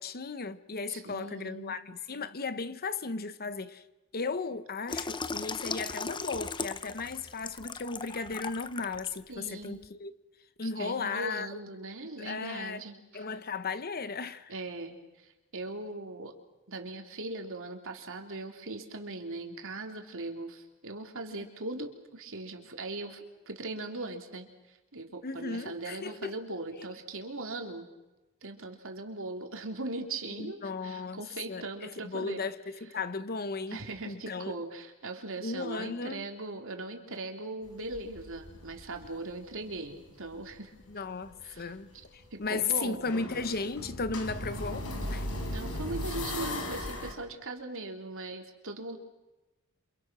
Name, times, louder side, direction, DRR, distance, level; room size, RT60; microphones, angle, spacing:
voice 1, 0.0-3.8 4.1-10.1 10.6-11.6 12.2-12.8 13.1-14.5 25.2-26.4 30.4-31.2 31.5-34.5 35.4-36.2 40.9-45.3, left 4 dB, 45° left, 1.0 m, -35 dB
voice 2, 0.9-1.8 9.3-9.8 10.6-13.3 14.5-16.3 16.7-27.9 28.4-32.4 33.7-40.7 41.4-41.7 42.3-43.0 45.5-49.0, right 2 dB, 65° right, 3.4 m, -40 dB
Water tap faucet / Sink (filling or washing), 4.9-9.2 9.6-9.9, left 4 dB, 20° left, 0.8 m, -37 dB
sound 1, 37.7-39.8 40.2-47.1, left 1 dB, 70° left, 4.9 m, -38 dB
29.0 x 27.5 x 6.2 m
head